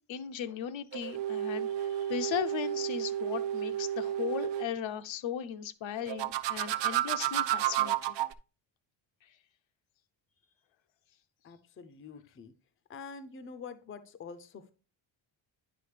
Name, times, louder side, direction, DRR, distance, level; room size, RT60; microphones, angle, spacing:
voice 1, 0.0-8.2, left 9 dB, 75° left, 0.7 m, -37 dB
sound 1, 0.9-4.7 6.1-8.3, right 12 dB, 65° right, 0.5 m, -32 dB
voice 2, 11.4-12.5 12.9-14.7, left 5 dB, 30° left, 0.5 m, -46 dB
9.7 x 4.9 x 3.3 m
wide cardioid pair, 165°, 46 cm